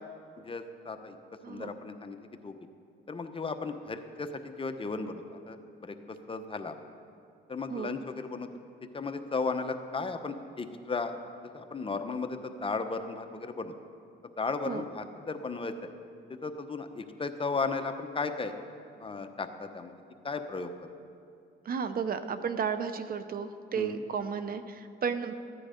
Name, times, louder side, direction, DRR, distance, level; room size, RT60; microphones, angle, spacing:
voice 1, 0.4-1.2 1.5-2.2 2.4-2.5 3.1-4.3 4.6-5.9 6.3-6.7 7.5-8.5 8.9-11.2 11.5-13.7 14.4-15.7 16.4-18.5 19.0-19.9 20.2-20.7 23.8-24.0, left 4 dB, 25° left, 7 dB, 0.8 m, -35 dB
voice 2, 21.6-25.3, right 6 dB, 50° right, 11 dB, 0.7 m, -33 dB
14.5 x 9.9 x 5.1 m, 2.5 s
cardioid pair, 90°, 20 cm